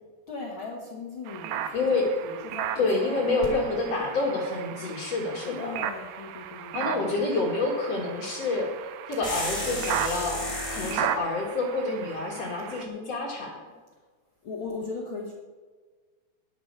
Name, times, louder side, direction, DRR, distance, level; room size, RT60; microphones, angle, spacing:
voice 1, 0.3-3.3 5.5-7.2 14.4-15.3, left 4 dB, 75° left, -1 dB, 1.1 m, -38 dB
sound 1, 1.3-12.9, right 10 dB, 85° right, 2.6 m, -36 dB
voice 2, 1.7-2.1 2.8-5.8 6.7-8.7 9.1-13.6, left 3 dB, 50° left, -1 dB, 2.2 m, -28 dB
sound 2, 9.2-11.1, left 1 dB, 15° left, 1.5 m, -32 dB
12.0 x 10.5 x 4.5 m, 1.4 s
omnidirectional pair, 4.5 m